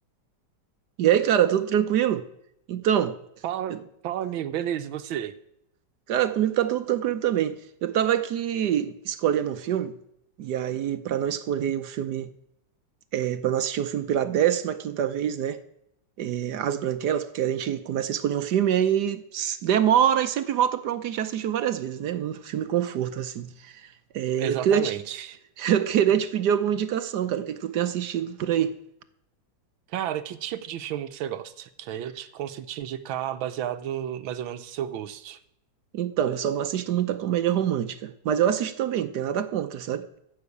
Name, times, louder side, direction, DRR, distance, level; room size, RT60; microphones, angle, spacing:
voice 1, 1.0-2.2 2.7-3.2 3.7-3.8 6.1-9.9 10.4-12.3 13.1-15.6 16.2-23.9 24.1-24.9 25.6-28.8 35.9-40.2, right 10 dB, 65° right, 1.2 m, -25 dB
voice 2, 3.4-5.4 24.4-25.4 29.9-35.4, right 10 dB, 85° right, 1.6 m, -32 dB
14.5 x 5.9 x 8.4 m
omnidirectional pair, 2.1 m